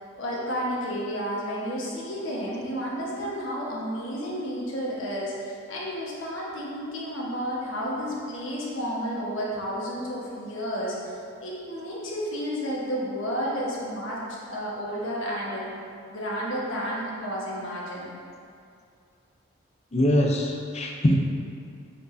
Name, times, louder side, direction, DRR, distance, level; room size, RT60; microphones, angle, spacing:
voice 1, 0.2-15.7 16.1-18.1, equal, 65° left, -5 dB, 1.3 m, -31 dB
voice 2, 19.9-21.1, left 1 dB, 30° left, 0 dB, 0.6 m, -22 dB
8.2 x 4.6 x 2.7 m, 2.4 s
head